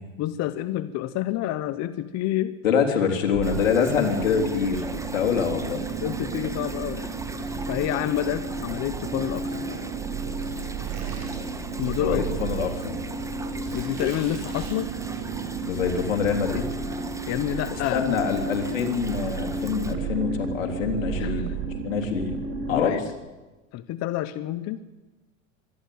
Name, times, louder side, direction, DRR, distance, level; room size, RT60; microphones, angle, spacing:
voice 1, 0.2-2.5 5.3-5.4 6.0-7.1 7.7-9.6 11.8-12.3 13.7-14.9 17.3-18.1 21.2-21.4 22.7-23.0 23.7-24.8, left 13 dB, 45° left, 13 dB, 1.0 m, -28 dB
voice 2, 2.6-4.8 5.1-5.8 12.0-13.0 15.6-16.6 17.9-21.5 21.8-22.4 22.7-23.0, left 6 dB, 90° left, 3 dB, 3.4 m, -25 dB
sound 1, 3.3-22.9, right 4 dB, 35° right, 4.8 m, -32 dB
sound 2, 3.4-19.9, right 2 dB, 10° right, 1.5 m, -41 dB
Squeak, 10.4-15.5, right 5 dB, 65° right, 7.0 m, -47 dB
24.5 x 11.5 x 9.5 m, 1.2 s
supercardioid pair, 115°, 38 cm